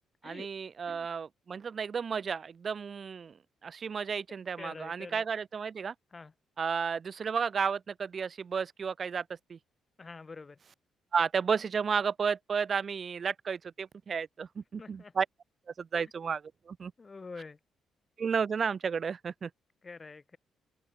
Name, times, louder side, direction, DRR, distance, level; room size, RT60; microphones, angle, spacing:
voice 1, 0.2-3.4 3.6-5.9 6.6-9.2 9.5-9.6 11.1-15.3 15.8-16.9 18.2-19.5, right 6 dB, 45° right, 2.0 m, -32 dB
voice 2, 4.6-5.3 6.1-6.3 10.0-10.6 14.8-15.1 17.0-17.6 19.8-20.4, left 4 dB, 30° left, 5.7 m, -46 dB
cardioid pair, 90°, 0 cm